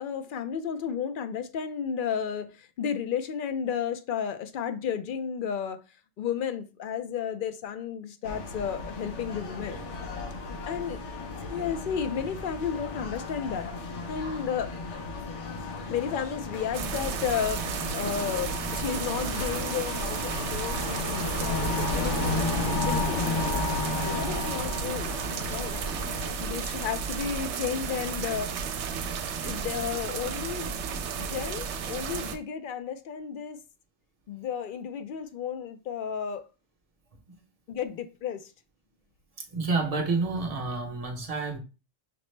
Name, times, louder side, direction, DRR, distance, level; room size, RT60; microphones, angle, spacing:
voice 1, 0.0-5.8 6.2-9.8 10.7-11.0 11.5-13.7 14.1-14.7 15.9-23.2 24.1-25.1 25.5-25.8 26.4-28.5 29.4-30.8 31.2-33.6 34.3-36.4 37.7-38.5, left 8 dB, 60° left, 0.6 m, -33 dB
sound 1, 8.2-26.3, left 3 dB, 85° left, 1.1 m, -33 dB
sound 2, 16.7-32.4, right 6 dB, 75° right, 0.8 m, -33 dB
voice 2, 39.5-41.6, right 3 dB, 35° right, 0.7 m, -29 dB
5.9 x 2.0 x 3.2 m
omnidirectional pair, 1.2 m